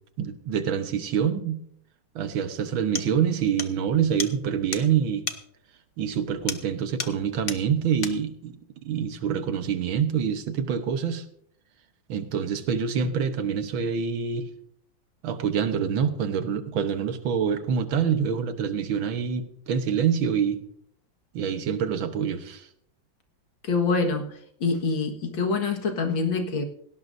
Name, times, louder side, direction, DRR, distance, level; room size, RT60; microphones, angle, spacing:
voice 1, 0.2-1.6 2.2-5.3 6.0-11.3 12.1-14.5 15.2-20.6 21.3-22.7, right 7 dB, 85° right, 9 dB, 1.9 m, -26 dB
sound 1, 2.4-2.5 3.0-3.1 3.6-3.8 4.2-4.3 4.7-4.9 5.3-5.4 6.5-6.7 7.0-7.2 7.5-7.6 8.0-8.2, left 5 dB, 40° left, 0.8 m, -32 dB
voice 2, 23.6-24.3 24.6-26.6, left 4 dB, 75° left, 4 dB, 2.4 m, -25 dB
17.5 x 17.5 x 2.6 m, 0.65 s
omnidirectional pair, 2.1 m